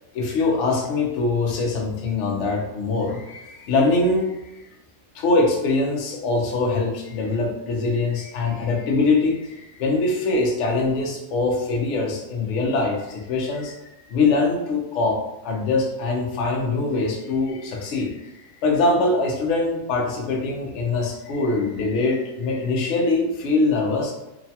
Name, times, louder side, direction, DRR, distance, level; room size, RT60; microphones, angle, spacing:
voice 1, 0.1-4.6 5.1-18.3 18.6-24.1, left 3 dB, 65° left, 0 dB, 0.7 m, -23 dB
3.0 x 2.1 x 2.7 m, 0.93 s
omnidirectional pair, 1.7 m